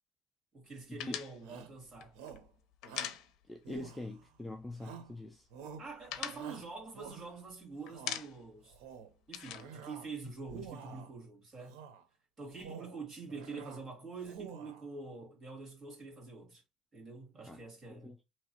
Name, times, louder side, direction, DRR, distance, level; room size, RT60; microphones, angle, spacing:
voice 1, 0.5-2.2 5.8-8.8 9.3-11.8 12.4-16.6 16.9-18.1, right 4 dB, 25° right, 2.7 m, -46 dB
sound 1, 1.0-3.8 4.0-4.2 4.5-5.2 5.5-7.5 7.9-8.6 8.9-10.7, left 10 dB, 65° left, 0.6 m, -43 dB
Shout, 1.4-1.8 2.2-2.5 2.8-3.2 3.7-4.3 4.8-5.2 5.5-5.9 6.3-7.4 7.8-8.2 8.7-9.1 9.5-10.1 10.4-11.1 11.7-12.0 12.5-13.0 13.3-13.8 14.2-14.9, right 7 dB, 90° right, 0.9 m, -49 dB
voice 2, 3.5-5.5 17.5-17.6 17.9-18.2, left 2 dB, 5° left, 0.4 m, -44 dB
4.7 x 3.1 x 2.9 m
cardioid pair, 145°, 0 cm